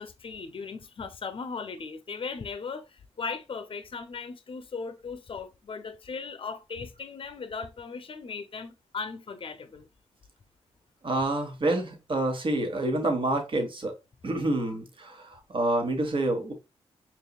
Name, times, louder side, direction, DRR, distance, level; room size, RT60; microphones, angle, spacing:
voice 1, 0.0-9.9, left 5 dB, 50° left, 0.7 m, -38 dB
voice 2, 11.0-13.9 14.2-16.5, right 2 dB, 45° right, 1.3 m, -28 dB
4.5 x 3.1 x 2.3 m
supercardioid pair, 50°, 12 cm